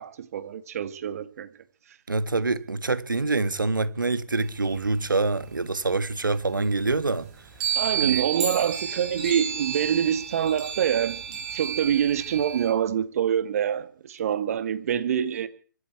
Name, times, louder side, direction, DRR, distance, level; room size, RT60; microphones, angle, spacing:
voice 1, 0.0-1.5 7.8-15.5, right 9 dB, 45° right, 2.0 m, -26 dB
voice 2, 2.1-7.3 8.0-8.2, right 3 dB, 85° right, 1.6 m, -26 dB
sound 1, 4.5-5.9 6.3-6.4 6.6-12.7, right 8 dB, 25° right, 5.2 m, -32 dB
25.0 x 12.0 x 4.7 m
figure-of-eight pair, 140°, 11 cm